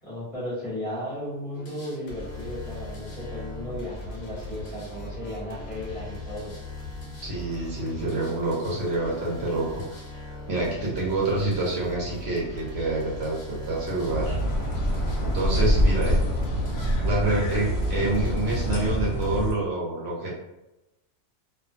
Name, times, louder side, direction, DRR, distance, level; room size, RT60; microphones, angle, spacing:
voice 1, 0.0-6.5, left 1 dB, 30° left, -10 dB, 1.1 m, -35 dB
sound 1, 1.5-19.3, left 2 dB, 90° left, 1.1 m, -39 dB
voice 2, 7.2-10.0 10.5-14.4 15.2-16.2 17.0-20.3, right 2 dB, 65° right, -4 dB, 0.9 m, -27 dB
sound 2, 14.1-19.5, equal, 65° left, 0.9 m, -25 dB
2.4 x 2.2 x 2.5 m, 0.95 s
omnidirectional pair, 1.3 m